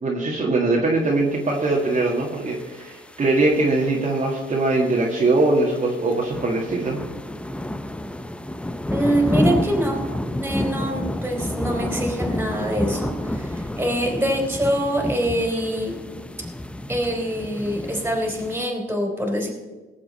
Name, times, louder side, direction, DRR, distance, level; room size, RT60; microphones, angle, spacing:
voice 1, 0.0-7.0, right 2 dB, 35° right, -3 dB, 1.9 m, -21 dB
sound 1, 1.5-18.7, left 1 dB, 5° left, 0.5 m, -30 dB
voice 2, 8.9-10.0 10.4-15.9 16.9-19.5, right 1 dB, 10° right, 1 dB, 3.5 m, -24 dB
18.0 x 7.4 x 4.3 m, 1.3 s
cardioid pair, 90°, 20 cm